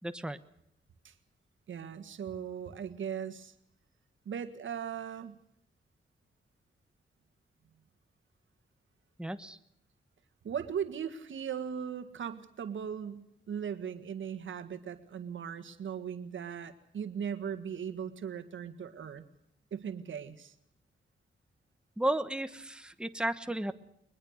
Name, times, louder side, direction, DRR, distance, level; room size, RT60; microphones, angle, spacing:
voice 1, 0.0-0.4 9.2-9.6 22.0-23.7, right 1 dB, 5° right, 10 dB, 1.2 m, -33 dB
voice 2, 1.7-3.5 4.3-5.4 10.4-19.3 19.7-20.5, right 8 dB, 85° right, 9 dB, 1.8 m, -38 dB
22.0 x 21.0 x 6.5 m, 0.75 s
cardioid pair, 85°, 20 cm